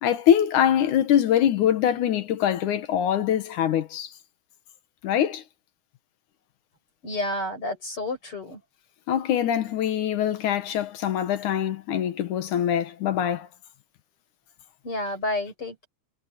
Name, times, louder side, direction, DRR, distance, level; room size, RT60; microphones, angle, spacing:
voice 1, 0.0-4.1 5.0-5.4 9.1-13.5, left 10 dB, 80° left, 2.8 m, -23 dB
voice 2, 7.0-8.6 14.8-15.9, left 1 dB, 45° left, 8.2 m, -30 dB
omnidirectional pair, 3.5 m